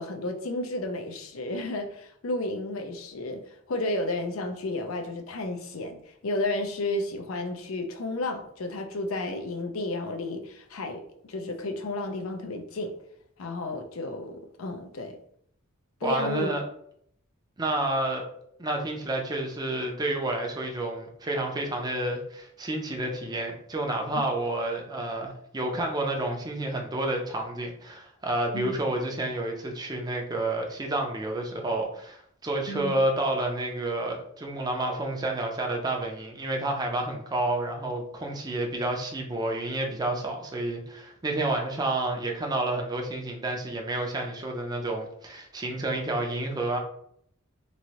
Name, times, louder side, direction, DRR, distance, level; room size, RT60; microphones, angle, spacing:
voice 1, 0.0-11.0 11.3-12.9 13.4-15.2 16.0-16.5 24.2-24.3 28.5-28.7 32.7-32.9, left 2 dB, 80° left, 4 dB, 0.5 m, -32 dB
voice 2, 16.0-16.6 17.6-18.2 18.6-46.8, right 2 dB, 20° right, 1 dB, 0.5 m, -30 dB
3.1 x 2.6 x 2.8 m, 0.68 s
head